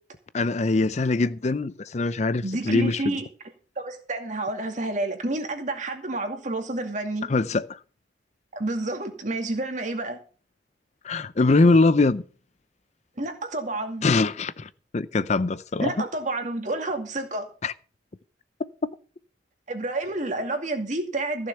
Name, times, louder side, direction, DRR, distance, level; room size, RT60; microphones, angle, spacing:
voice 1, 0.3-3.1 7.3-7.8 11.0-12.2 14.0-16.1 17.6-17.7, left 3 dB, 40° left, 0.5 m, -22 dB
voice 2, 2.4-3.2 3.8-7.3 8.5-10.2 13.2-14.0 15.8-17.5 19.7-21.5, right 2 dB, 45° right, 2.4 m, -29 dB
15.0 x 6.6 x 6.9 m
head